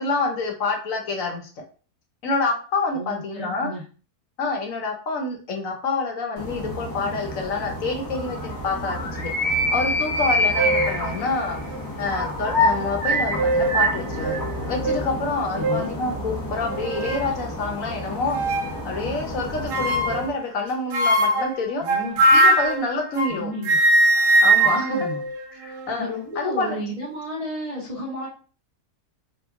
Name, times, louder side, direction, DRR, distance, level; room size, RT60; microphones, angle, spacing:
voice 1, 0.0-1.5 2.2-3.7 4.4-9.3 9.7-11.6 12.0-14.4 14.7-18.4 18.8-21.8 22.3-23.5 24.4-25.0 25.5-26.1 26.4-26.8, left 3 dB, 65° left, 2 dB, 1.0 m, -27 dB
voice 2, 2.9-3.8 15.5-15.9 21.8-22.2 23.3-23.8 24.6-25.2 26.0-28.3, equal, 35° right, -7 dB, 0.6 m, -32 dB
sound 1, 6.4-20.3, equal, 30° left, 0.4 m, -27 dB
sound 2, 10.1-10.3 10.6-11.0 11.7-11.8 13.1-13.8 14.2-14.4 14.8-15.0 15.6-15.9 16.6-17.3 18.3-18.8 19.7-20.3 20.9-23.4 23.6-26.0, right 1 dB, 70° right, 0.9 m, -21 dB
2.8 x 2.3 x 3.5 m, 0.39 s
omnidirectional pair, 1.6 m